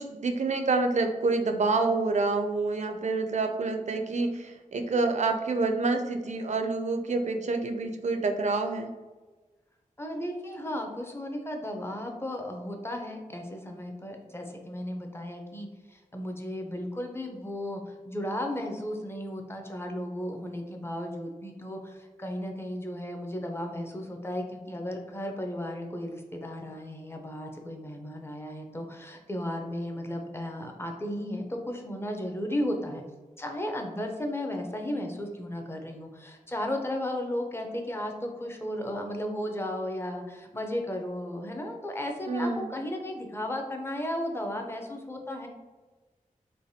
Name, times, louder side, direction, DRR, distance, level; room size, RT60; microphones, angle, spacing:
voice 1, 0.0-8.9 42.3-42.8, right 3 dB, 55° right, 5 dB, 0.4 m, -27 dB
voice 2, 10.0-33.0 33.4-45.5, left 1 dB, 15° left, 2 dB, 0.5 m, -35 dB
3.2 x 2.2 x 2.7 m, 1.2 s
wide cardioid pair, 55°, 14 cm